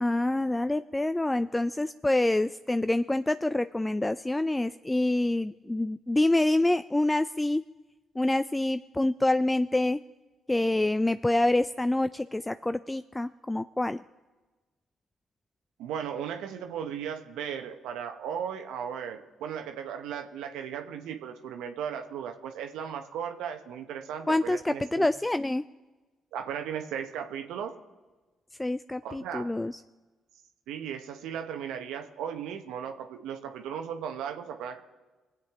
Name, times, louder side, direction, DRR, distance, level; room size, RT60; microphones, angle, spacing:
voice 1, 0.0-7.6 8.2-10.0 10.5-14.0 24.3-25.6 28.6-29.7, left 1 dB, 15° left, 12 dB, 0.3 m, -26 dB
voice 2, 15.8-25.1 26.3-27.8 29.0-29.5 30.7-34.8, right 8 dB, 75° right, 6 dB, 0.9 m, -36 dB
21.0 x 8.3 x 3.5 m, 1.2 s
hypercardioid pair, 50°, 0 cm